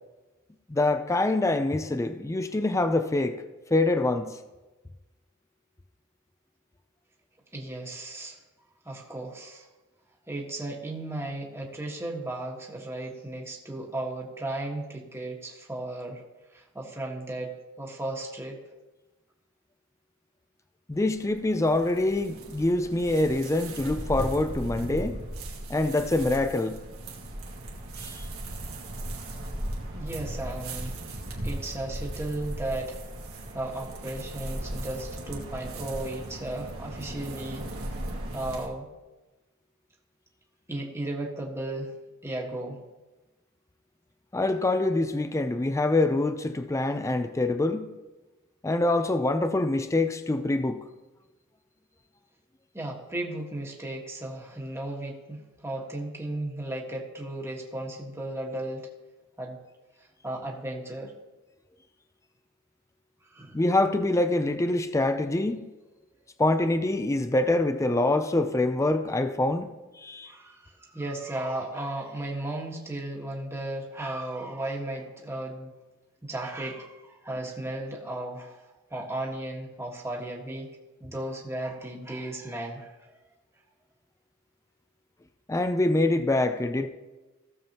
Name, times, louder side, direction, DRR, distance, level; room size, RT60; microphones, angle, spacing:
voice 1, 0.7-3.4 3.7-4.4 20.9-25.2 25.7-26.8 28.0-28.2 44.3-47.9 48.6-50.8 63.5-65.7 66.4-69.7 70.0-70.3 85.5-86.9, left 2 dB, 15° left, 0.4 m, -25 dB
voice 2, 7.5-8.4 8.8-9.7 10.3-16.2 16.5-18.6 29.9-31.0 31.4-33.0 33.5-37.7 38.3-38.9 40.7-41.9 42.2-42.8 52.7-58.9 59.4-59.6 60.0-61.1 63.2-63.6 70.3-75.7 76.2-78.6 78.9-80.7 81.0-83.1, right 1 dB, 10° right, 1.4 m, -35 dB
sound 1, 20.9-38.7, right 1 dB, 80° right, 1.8 m, -37 dB
16.5 x 7.2 x 2.9 m
head